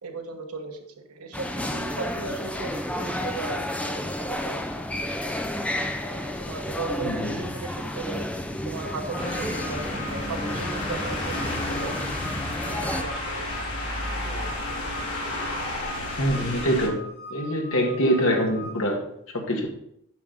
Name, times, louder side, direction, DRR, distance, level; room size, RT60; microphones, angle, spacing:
voice 1, 0.0-0.8 1.1-4.8 6.0-8.2 8.6-12.2 12.6-13.6 14.2-14.4, right 3 dB, 85° right, 4 dB, 1.3 m, -37 dB
sound 1, 1.3-13.0, left 1 dB, 5° left, 0.5 m, -31 dB
voice 2, 7.0-7.3 16.2-19.0 19.3-19.7, equal, 65° left, 1 dB, 1.8 m, -24 dB
sound 2, 8.7-18.8, equal, 45° right, 2.9 m, -42 dB
sound 3, 9.2-16.9, left 1 dB, 85° left, 3.0 m, -32 dB
9.3 x 6.3 x 3.9 m, 0.72 s
head